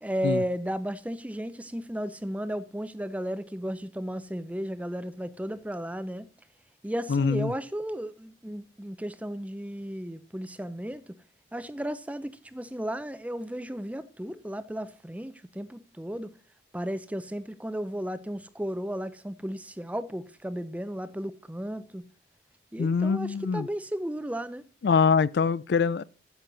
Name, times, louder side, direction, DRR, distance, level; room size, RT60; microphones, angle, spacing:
voice 1, 0.0-6.3 6.8-11.2 11.5-16.3 16.7-22.1 22.7-24.6, equal, 10° right, 0.4 m, -34 dB
voice 2, 7.1-7.5 22.8-23.7 24.8-26.0, left 5 dB, 65° left, 0.3 m, -24 dB
10.0 x 7.6 x 3.9 m
head